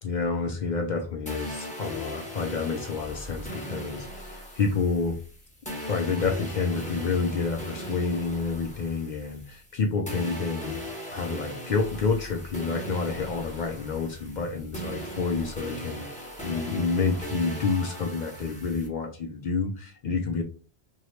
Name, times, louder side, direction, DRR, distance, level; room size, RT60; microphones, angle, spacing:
voice 1, 0.0-5.2 5.8-10.8 11.1-20.4, left 4 dB, 60° left, 3 dB, 0.5 m, -29 dB
sound 1, 1.3-9.8 10.1-18.9, equal, 5° left, 0.8 m, -38 dB
3.0 x 2.7 x 3.0 m, 0.38 s
omnidirectional pair, 1.1 m